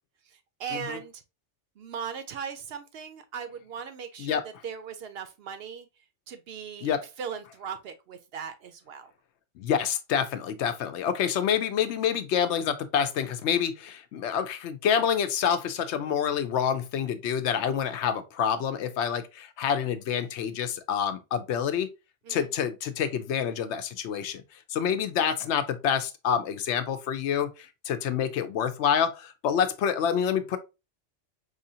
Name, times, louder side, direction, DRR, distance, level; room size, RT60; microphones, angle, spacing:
voice 1, 0.3-1.2 1.8-5.9 6.3-6.9 7.2-9.1 22.2-22.5, right 7 dB, 65° right, 0.7 m, -38 dB
voice 2, 9.6-21.9 22.3-24.4 24.7-30.6, left 8 dB, 75° left, 0.8 m, -27 dB
4.8 x 2.5 x 2.7 m
omnidirectional pair, 1.2 m